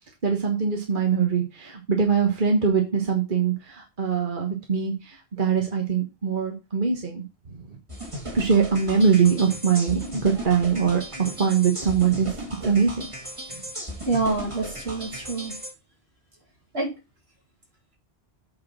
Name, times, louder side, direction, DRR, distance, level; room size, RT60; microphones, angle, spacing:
voice 1, 0.2-7.7 8.3-13.1 13.5-13.6, right 6 dB, 50° right, 2 dB, 1.5 m, -23 dB
sound 1, 7.9-15.7, right 1 dB, 30° right, 2.1 m, -36 dB
voice 2, 14.1-15.5 16.7-16.9, right 3 dB, 75° right, 0 dB, 2.9 m, -26 dB
8.5 x 4.3 x 5.9 m, 0.27 s
omnidirectional pair, 1.1 m